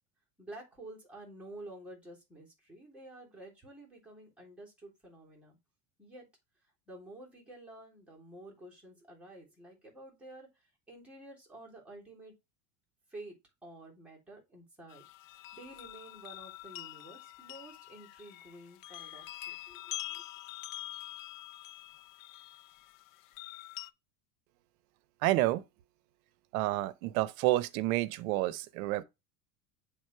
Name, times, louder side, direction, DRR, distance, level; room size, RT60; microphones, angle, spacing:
voice 1, 0.4-5.6 6.0-6.3 6.9-12.3 13.1-13.3 13.6-20.2, right 1 dB, 5° right, 3.2 m, -51 dB
sound 1, 14.9-23.9, left 15 dB, 45° left, 0.6 m, -45 dB
voice 2, 25.2-25.6 26.5-29.0, right 16 dB, 70° right, 0.8 m, -29 dB
8.0 x 3.7 x 4.5 m
supercardioid pair, 140°, 44 cm